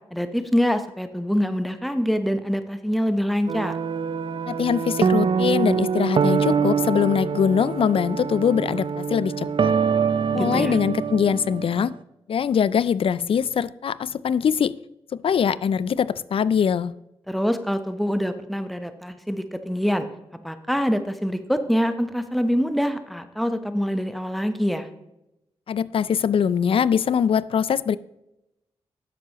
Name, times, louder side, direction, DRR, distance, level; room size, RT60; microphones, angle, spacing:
voice 1, 0.1-3.8 10.3-10.8 17.3-20.1 20.4-24.9, equal, ahead, 9 dB, 0.9 m, -25 dB
sound 1, 3.5-11.8, right 6 dB, 50° right, 0.5 m, -24 dB
voice 2, 4.5-9.7 10.3-11.9 12.3-14.8 15.1-16.9 25.7-28.0, left 7 dB, 55° left, 19 dB, 0.4 m, -22 dB
10.5 x 7.5 x 3.0 m, 0.89 s
supercardioid pair, 45°, 11 cm